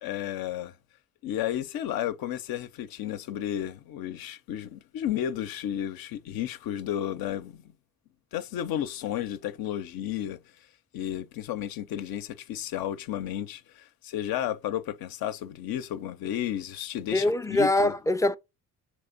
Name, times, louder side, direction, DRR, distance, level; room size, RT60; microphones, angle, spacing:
voice 1, 0.0-0.7 1.2-7.6 8.3-10.4 10.9-17.9, left 11 dB, 75° left, 0.5 m, -32 dB
voice 2, 17.1-18.4, left 1 dB, 10° left, 0.3 m, -23 dB
3.4 x 3.2 x 3.9 m
supercardioid pair, 60°, 36 cm